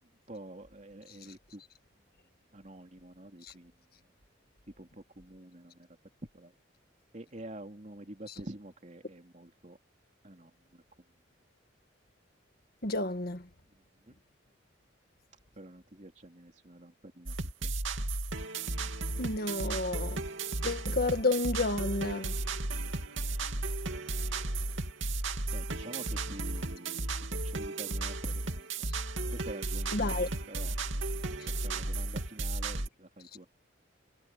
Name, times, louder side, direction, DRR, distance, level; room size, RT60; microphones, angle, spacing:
voice 1, 0.3-1.6 2.5-3.7 4.8-5.9 6.3-6.5 7.1-9.8 10.2-10.8 14.1-14.2 15.6-17.4 17.6-17.7 23.9-24.0 25.5-28.9 29.3-30.7 31.6-33.5, right 1 dB, 40° right, 3.3 m, -47 dB
voice 2, 12.8-13.5 19.2-20.3 20.6-22.3 29.9-30.3, left 2 dB, 50° left, 1.8 m, -31 dB
sound 1, 17.3-32.9, right 2 dB, 85° right, 2.7 m, -34 dB
head